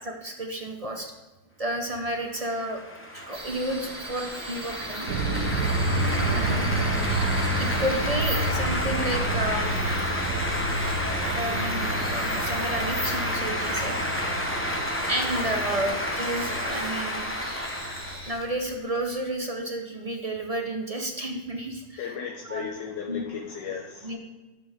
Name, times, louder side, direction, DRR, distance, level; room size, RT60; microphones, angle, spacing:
voice 1, 0.0-1.1 1.6-2.8 3.1-5.1 6.2-9.6 11.3-14.0 15.0-17.4 18.3-22.0 22.5-22.7 23.1-23.2 24.0-24.2, right 1 dB, 30° right, 3 dB, 0.6 m, -31 dB
sound 1, 2.3-19.0, equal, 10° left, 0.6 m, -30 dB
sound 2, 3.3-18.3, right 1 dB, 15° right, 1.9 m, -41 dB
sound 3, 5.1-17.2 17.6-18.2, right 2 dB, 60° right, 1.3 m, -30 dB
voice 2, 22.0-24.2, left 7 dB, 75° left, 1 dB, 1.6 m, -35 dB
12.5 x 7.4 x 3.6 m, 1.1 s
omnidirectional pair, 1.9 m